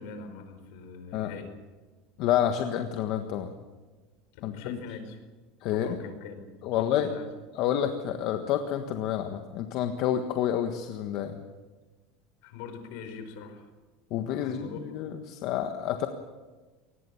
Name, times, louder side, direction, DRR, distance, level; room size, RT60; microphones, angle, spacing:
voice 1, 0.0-1.5 4.4-5.2 5.7-7.3 12.4-13.7 14.4-14.8, left 5 dB, 70° left, 8 dB, 4.9 m, -42 dB
voice 2, 2.2-3.5 4.4-4.8 5.6-6.0 6.6-7.1 7.5-11.3 14.1-16.1, left 10 dB, 50° left, 6 dB, 1.5 m, -29 dB
23.5 x 19.5 x 7.2 m, 1.3 s
cardioid pair, 155°, 0 cm